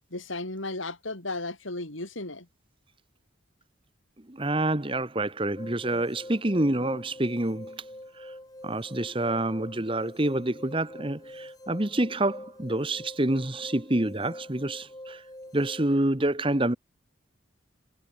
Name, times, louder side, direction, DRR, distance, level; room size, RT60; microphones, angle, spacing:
voice 1, 0.1-2.5, left 2 dB, 85° left, 7.3 m, -34 dB
voice 2, 4.3-7.8 8.2-8.3 8.6-15.2 15.5-16.8, right 1 dB, 25° right, 1.3 m, -27 dB
sound 1, 5.6-16.0, left 1 dB, 20° left, 4.8 m, -45 dB
head